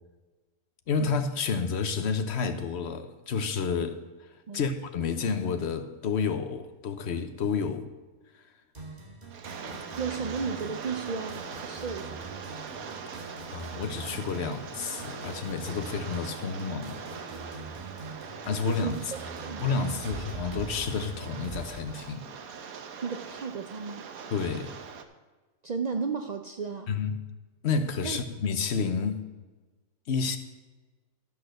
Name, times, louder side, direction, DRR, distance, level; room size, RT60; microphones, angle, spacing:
voice 1, 0.9-4.0 4.5-7.9 13.2-17.0 18.4-19.0 19.6-22.2 24.3-24.7 26.9-27.2 27.6-29.2 30.1-30.4, left 5 dB, 55° left, 8 dB, 1.1 m, -30 dB
sound 1, 8.7-21.7, right 3 dB, 30° right, 1.7 m, -44 dB
Rain, 9.3-25.0, right 6 dB, 85° right, 1.3 m, -41 dB
voice 2, 10.0-12.4 18.6-19.9 23.0-24.1 25.6-27.0 28.0-28.2, right 5 dB, 70° right, 6 dB, 0.4 m, -34 dB
12.5 x 6.3 x 6.6 m, 1.2 s
omnidirectional pair, 1.5 m